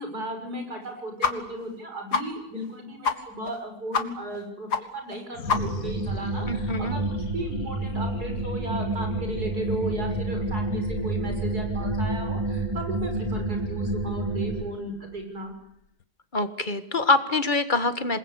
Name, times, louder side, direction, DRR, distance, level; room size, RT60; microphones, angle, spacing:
voice 1, 0.0-15.5, right 1 dB, 75° right, 4 dB, 6.8 m, -35 dB
sound 1, 1.2-1.3 1.6-1.7 2.1-2.3 2.6-2.7 3.0-3.2 3.5-3.6 3.9-4.0 4.3-4.4 4.7-4.8 5.1-5.2 5.5-5.9, left 5 dB, 85° left, 2.4 m, -25 dB
sound 2, 5.3-16.0, left 7 dB, 65° left, 1.7 m, -40 dB
sound 3, 5.5-14.7, right 2 dB, 20° right, 2.5 m, -29 dB
voice 2, 6.5-7.0 16.3-18.2, left 3 dB, 30° left, 11 dB, 1.7 m, -25 dB
27.5 x 21.0 x 8.3 m, 0.78 s
omnidirectional pair, 1.7 m